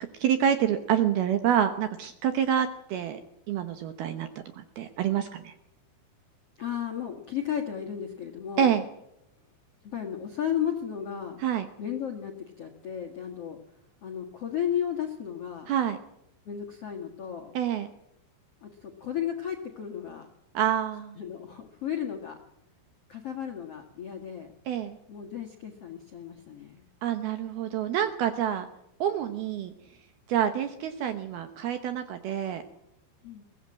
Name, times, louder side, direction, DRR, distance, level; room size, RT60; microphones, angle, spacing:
voice 1, 0.2-3.2 3.5-5.5 8.6-8.8 11.4-11.7 15.7-16.0 17.5-17.9 20.5-21.2 24.7-25.0 27.0-28.7 29.0-29.7 30.3-32.6, right 9 dB, 70° right, 9 dB, 2.4 m, -27 dB
voice 2, 6.6-8.7 9.8-11.4 11.8-13.6 14.0-15.7 16.4-17.5 18.6-20.3 21.1-22.4 23.1-24.5 25.1-26.8 33.2-33.4, left 9 dB, 60° left, 2 dB, 1.5 m, -34 dB
22.5 x 17.0 x 7.6 m, 0.81 s
omnidirectional pair, 5.5 m